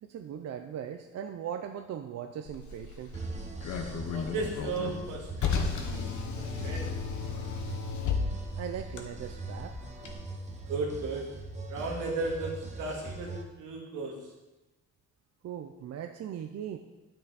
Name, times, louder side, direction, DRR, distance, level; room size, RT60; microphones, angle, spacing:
voice 1, 0.0-3.2 8.6-9.8 15.4-16.8, right 9 dB, 60° right, 6 dB, 0.6 m, -39 dB
Car, 2.5-10.1, left 5 dB, 75° left, 1.3 m, -34 dB
sound 1, 3.1-13.4, right 2 dB, 25° right, 1.2 m, -42 dB
voice 2, 4.1-6.9 10.7-11.3 11.7-14.2, right 3 dB, 85° right, -1 dB, 2.2 m, -35 dB
9.4 x 7.5 x 4.1 m, 1.1 s
cardioid pair, 90°, 30 cm